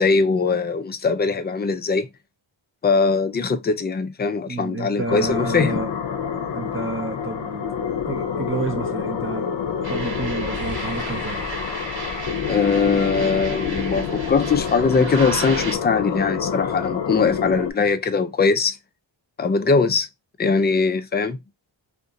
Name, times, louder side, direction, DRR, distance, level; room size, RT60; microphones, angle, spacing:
voice 1, 0.0-2.1 2.8-5.8 12.5-18.8 19.4-20.1 20.4-21.4, left 4 dB, 25° left, 0.3 m, -21 dB
voice 2, 4.5-5.9 6.5-7.8 8.1-11.4, right 4 dB, 30° right, 0.6 m, -30 dB
sound 1, 5.1-17.7, left 7 dB, 60° left, 0.7 m, -28 dB
sound 2, 9.8-15.8, right 2 dB, 70° right, 1.3 m, -33 dB
2.5 x 2.5 x 3.8 m
wide cardioid pair, 120°, 47 cm